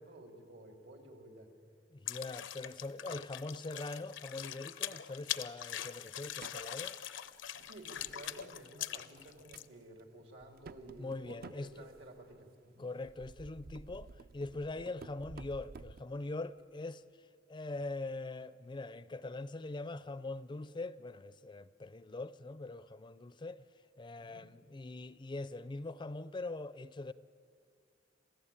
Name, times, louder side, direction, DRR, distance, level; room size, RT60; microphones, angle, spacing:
voice 1, 0.0-1.5 7.5-12.8 24.2-24.4, right 1 dB, 85° right, 3.4 m, -53 dB
voice 2, 1.9-7.0 11.0-11.9 12.8-17.0 17.5-23.6 24.0-27.1, left 2 dB, 25° left, 0.5 m, -42 dB
sound 1, 2.1-9.6, left 11 dB, 80° left, 0.7 m, -42 dB
sound 2, 6.3-6.7 7.3-8.6 9.0-9.7 10.0-10.1 10.4-12.4 13.0-16.0, right 3 dB, 55° right, 0.5 m, -53 dB
27.5 x 15.5 x 8.8 m
head